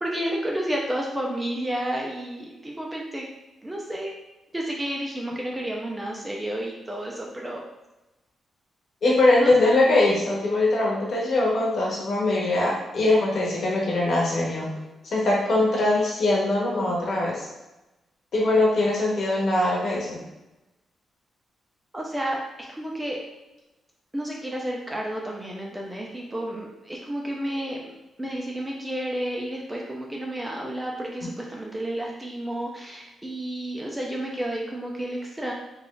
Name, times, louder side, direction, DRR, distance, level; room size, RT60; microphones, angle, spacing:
voice 1, 0.0-3.3 3.6-4.1 4.5-7.6 9.4-9.7 21.9-23.2 24.1-27.8 28.2-35.5, right 1 dB, 10° right, -2 dB, 0.4 m, -31 dB
voice 2, 9.0-14.7 15.0-17.5 18.3-20.2, left 2 dB, 50° left, -4 dB, 1.1 m, -22 dB
3.2 x 2.4 x 3.8 m, 1.0 s
wide cardioid pair, 150°, 0 cm